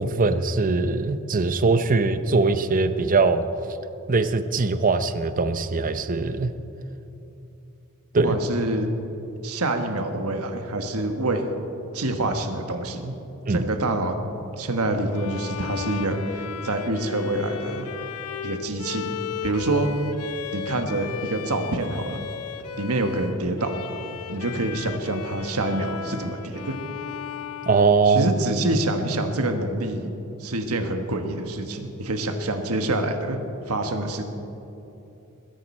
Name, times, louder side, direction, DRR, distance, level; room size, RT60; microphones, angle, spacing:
voice 1, 0.0-3.5 4.1-6.5 8.1-8.4 13.5-13.6 27.7-28.3, right 3 dB, 40° right, 11 dB, 0.7 m, -21 dB
voice 2, 8.2-8.9 9.4-11.4 11.9-13.1 13.5-14.2 14.6-17.9 18.4-19.1 19.4-19.9 20.5-22.2 22.8-23.8 24.3-26.8 28.1-30.1 30.4-33.4 33.7-34.2, right 2 dB, 85° right, 6 dB, 1.3 m, -26 dB
Bowed string instrument, 15.1-28.6, left 8 dB, 80° left, 0.7 m, -36 dB
21.0 x 10.5 x 4.4 m, 2.9 s
head